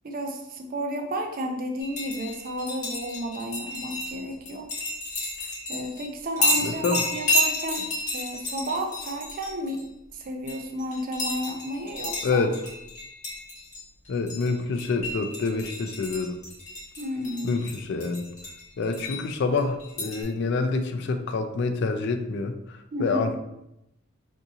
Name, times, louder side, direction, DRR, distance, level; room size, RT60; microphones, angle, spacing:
voice 1, 0.0-4.7 5.7-7.9 8.1-9.8 10.1-12.5 17.0-17.6 22.9-23.3, right 1 dB, 45° right, 3 dB, 0.5 m, -32 dB
sound 1, 1.8-6.1 6.4-9.8 10.5-19.3 19.6-20.2, left 1 dB, 35° left, 1.0 m, -31 dB
voice 2, 6.6-7.0 12.2-12.5 14.1-16.4 17.4-18.3 18.8-23.4, left 4 dB, 60° left, 6 dB, 0.4 m, -27 dB
3.6 x 2.6 x 2.8 m, 0.84 s
head